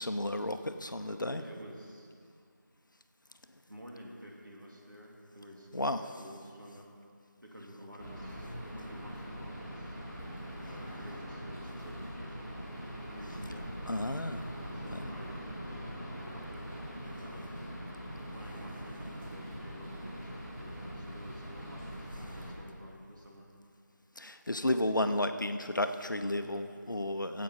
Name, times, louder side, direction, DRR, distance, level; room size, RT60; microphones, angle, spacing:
voice 1, 0.0-1.4 5.7-6.0 13.9-14.4 14.9-15.1 24.2-27.4, left 1 dB, 80° left, 8 dB, 0.6 m, -32 dB
voice 2, 0.9-2.1 3.6-6.9 7.4-10.0 10.7-12.6 13.0-13.7 14.7-17.5 18.3-23.5, equal, 80° right, -2 dB, 2.4 m, -51 dB
sound 1, 8.0-22.5, equal, 5° left, 2.0 m, -42 dB
15.0 x 8.3 x 4.2 m, 2.3 s
figure-of-eight pair, 170°, 10 cm